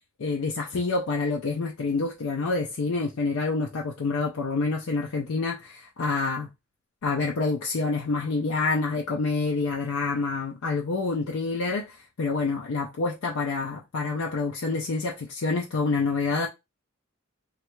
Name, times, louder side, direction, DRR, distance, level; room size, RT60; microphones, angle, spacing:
voice 1, 0.2-6.5 7.0-16.5, left 3 dB, 75° left, 0.5 m, -27 dB
3.2 x 2.4 x 3.0 m
head